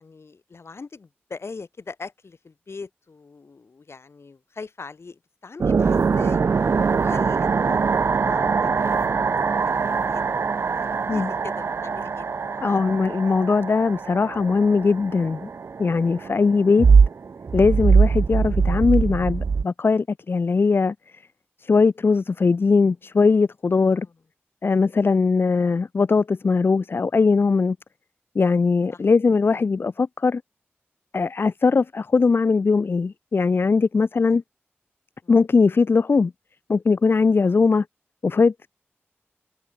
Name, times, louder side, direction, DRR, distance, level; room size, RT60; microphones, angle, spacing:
voice 1, 0.0-6.4 7.0-9.6 10.1-10.2 10.7-12.8 23.8-24.1 28.9-29.0 34.3-34.4 35.2-35.3 37.4-37.6, left 4 dB, 75° left, 7.3 m, -41 dB
sound 1, 5.6-19.6, right 5 dB, 70° right, 0.3 m, -22 dB
voice 2, 12.6-15.5 15.8-16.9 17.5-21.2 21.6-24.1 24.6-27.8 28.4-30.4 31.1-34.4 35.3-36.3 36.7-37.9 38.2-38.7, left 4 dB, 55° left, 0.4 m, -20 dB
wide cardioid pair, 60°, 4 cm